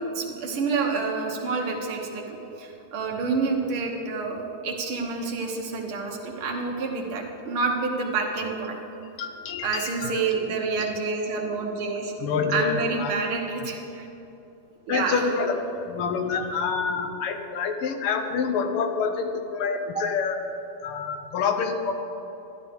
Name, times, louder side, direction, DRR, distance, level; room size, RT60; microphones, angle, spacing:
voice 1, 0.2-8.8 9.6-12.1 12.5-14.1 14.9-15.2, right 4 dB, 70° right, 1 dB, 1.9 m, -28 dB
voice 2, 9.2-10.2 10.8-10.9 12.2-13.1 14.9-20.4 20.8-21.9, left 5 dB, 85° left, 6 dB, 1.7 m, -27 dB
12.0 x 11.5 x 3.5 m, 2.9 s
omnidirectional pair, 2.4 m